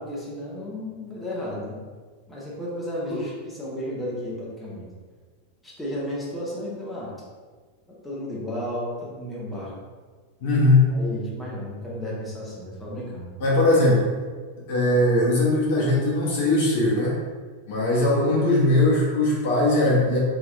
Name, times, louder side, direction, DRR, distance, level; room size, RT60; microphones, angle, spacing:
voice 1, 0.0-1.8 2.3-4.8 5.6-7.1 7.9-9.7 10.9-13.3, left 1 dB, 5° left, -7 dB, 0.9 m, -33 dB
voice 2, 10.4-10.9 13.4-14.1 14.7-17.2 17.7-20.2, left 2 dB, 50° left, -4 dB, 1.0 m, -20 dB
4.4 x 2.9 x 2.3 m, 1.5 s
figure-of-eight pair, 90°, 0 cm